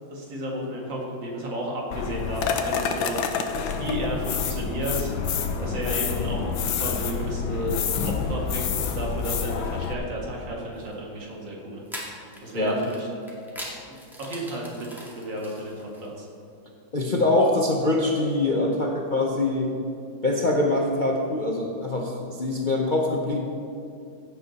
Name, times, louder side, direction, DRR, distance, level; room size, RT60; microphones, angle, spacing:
voice 1, 0.1-3.3 3.6-5.1 5.6-13.3 13.9-14.9 15.1-16.3, right 1 dB, 70° right, -2 dB, 2.7 m, -33 dB
sound 1, 1.9-9.9, left 6 dB, 85° left, 1.6 m, -28 dB
sound 2, 10.7-10.9 11.9-16.2, equal, ahead, 2.0 m, -41 dB
voice 2, 16.9-19.7 20.2-23.4, left 2 dB, 50° left, -1 dB, 0.6 m, -24 dB
16.0 x 8.1 x 4.2 m, 2.5 s
omnidirectional pair, 2.1 m